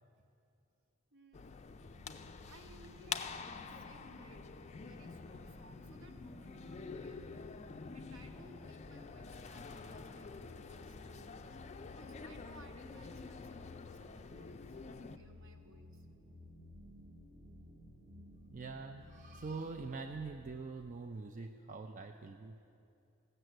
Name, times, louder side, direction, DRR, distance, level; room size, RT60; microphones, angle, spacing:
voice 1, 1.1-1.5 2.5-4.4 4.7-11.3 11.8-16.1, right 1 dB, 65° right, 5 dB, 1.1 m, -61 dB
sound 1, 1.3-15.2, left 5 dB, 30° left, 0.4 m, -48 dB
sound 2, 1.8-20.6, left 1 dB, 80° right, 2.3 m, -56 dB
voice 2, 18.5-22.6, right 4 dB, 35° right, 5 dB, 0.4 m, -44 dB
15.5 x 6.7 x 7.9 m, 2.7 s
head